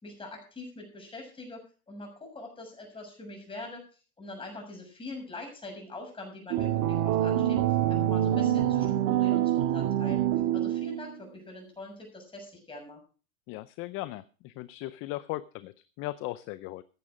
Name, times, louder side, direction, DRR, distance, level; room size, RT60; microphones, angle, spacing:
voice 1, 0.0-3.8 4.2-7.6 7.9-10.2 10.5-13.0, left 2 dB, 10° left, 2 dB, 6.6 m, -43 dB
sound 1, 6.5-11.1, right 12 dB, 40° right, 1.7 m, -26 dB
voice 2, 13.5-16.8, left 17 dB, 30° left, 16 dB, 0.5 m, -38 dB
15.0 x 9.6 x 5.0 m, 0.38 s
hypercardioid pair, 120°, 42 cm